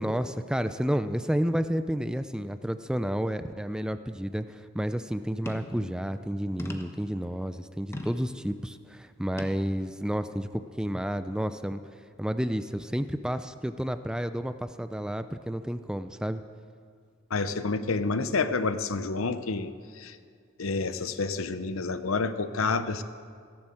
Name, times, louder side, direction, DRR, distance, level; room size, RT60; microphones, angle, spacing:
voice 1, 0.0-11.8 12.2-16.4, equal, 5° right, 11 dB, 0.4 m, -31 dB
sound 1, 5.5-5.8 6.6-7.1 7.9-8.3 9.4-9.6 10.3-10.4, left 1 dB, 10° left, 1.1 m, -38 dB
voice 2, 17.3-20.2 20.6-23.0, left 4 dB, 75° left, 11 dB, 0.8 m, -29 dB
16.0 x 11.5 x 7.7 m, 2.1 s
head